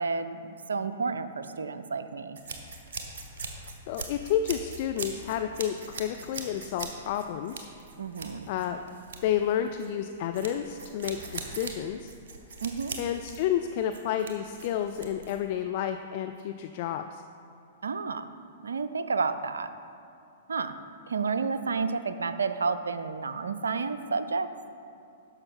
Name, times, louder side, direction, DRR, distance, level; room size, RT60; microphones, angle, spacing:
voice 1, 0.0-2.4 8.0-8.5 12.6-13.0 17.8-18.3 18.6-19.7 20.5-20.8 21.1-24.5, right 4 dB, 75° right, 11 dB, 0.4 m, -31 dB
sound 1, 2.4-15.5, right 4 dB, 55° right, 1.1 m, -41 dB
voice 2, 3.5-7.7 8.5-9.0 9.2-12.1 13.0-17.2, left 10 dB, 45° left, 8 dB, 0.3 m, -30 dB
9.8 x 6.6 x 4.3 m, 2.6 s
figure-of-eight pair, 105°, 0 cm